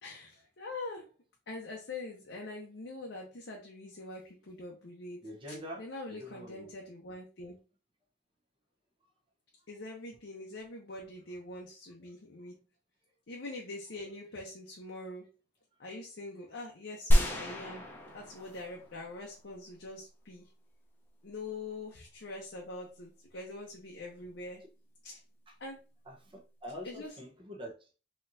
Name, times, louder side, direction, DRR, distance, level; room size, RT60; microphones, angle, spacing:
voice 1, 0.0-1.1 1.5-5.2 5.8-7.6 9.7-12.6 13.3-15.3 15.8-17.9 18.1-20.5 21.2-24.6 25.0-25.2 25.6-25.8 26.8-27.1, left 2 dB, 75° left, 0.7 m, -44 dB
voice 2, 5.2-6.7 25.5-25.6 26.1-27.9, equal, 30° right, 0.9 m, -45 dB
sound 1, 17.1-19.4, equal, 10° left, 0.7 m, -29 dB
4.2 x 3.0 x 2.6 m
head